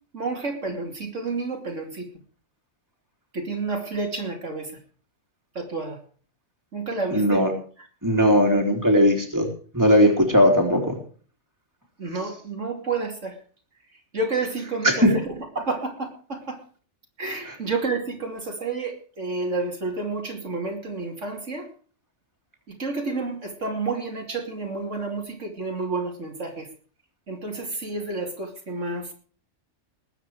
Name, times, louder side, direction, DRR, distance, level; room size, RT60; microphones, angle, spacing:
voice 1, 0.1-2.0 3.3-4.7 5.5-6.0 6.7-7.4 12.0-13.4 14.1-15.0 15.6-16.6 17.2-21.6 22.8-26.7 27.3-29.1, right 3 dB, 65° right, 2 dB, 3.1 m, -30 dB
voice 2, 7.1-7.5 8.0-9.5 9.7-11.0 14.8-15.2 17.4-17.6, equal, 15° right, 2 dB, 3.5 m, -18 dB
20.5 x 9.1 x 4.8 m, 0.43 s
omnidirectional pair, 1.4 m